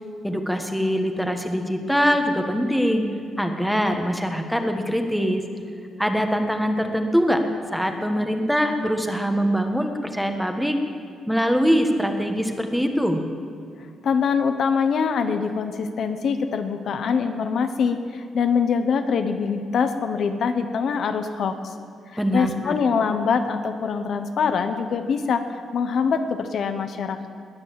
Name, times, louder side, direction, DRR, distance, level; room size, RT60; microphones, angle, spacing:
voice 1, 0.2-3.1 3.4-5.4 6.0-7.4 7.7-10.8 11.3-13.2 22.2-22.8, equal, ahead, 5 dB, 1.3 m, -23 dB
voice 2, 14.0-21.7 22.1-27.3, left 6 dB, 60° left, 8 dB, 1.0 m, -24 dB
20.5 x 9.0 x 7.6 m, 2.3 s
cardioid pair, 130°, 0 cm